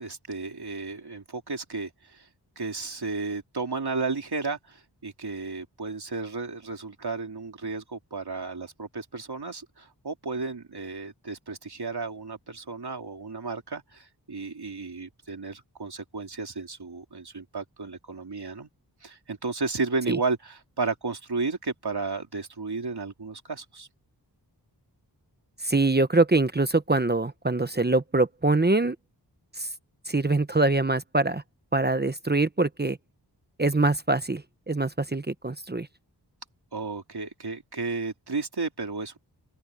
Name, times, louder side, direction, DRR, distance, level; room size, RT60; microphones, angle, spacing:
voice 1, 0.0-2.3 2.6-18.7 19.0-23.9 36.7-39.2, right 4 dB, 65° right, 3.2 m, -33 dB
voice 2, 25.6-29.0 29.5-29.7 30.1-31.4 31.7-33.0 33.6-35.9, right 2 dB, 25° right, 0.9 m, -24 dB
open air
wide cardioid pair, 75°, 42 cm